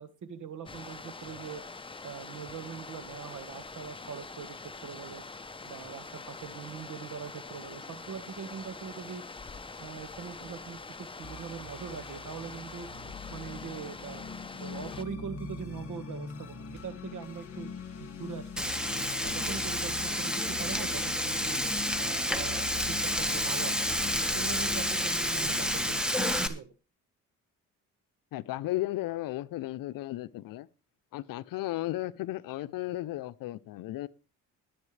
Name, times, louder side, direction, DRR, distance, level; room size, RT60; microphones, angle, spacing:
voice 1, 0.0-1.6 2.0-4.6 4.8-5.2 5.6-9.2 9.8-12.9 13.3-17.7 18.0-18.7 19.2-20.3 20.6-21.6 22.0-23.8 24.3-26.2 26.5-26.7, right 7 dB, 65° right, 1.6 m, -42 dB
sound 1, 0.7-15.1, left 3 dB, 15° left, 0.8 m, -44 dB
sound 2, 11.2-26.0, left 5 dB, 45° left, 2.0 m, -42 dB
Frying (food), 18.6-26.5, equal, ahead, 1.4 m, -30 dB
voice 2, 28.3-30.7 31.1-34.1, left 16 dB, 75° left, 0.7 m, -34 dB
20.5 x 8.0 x 3.3 m
cardioid pair, 85°, 33 cm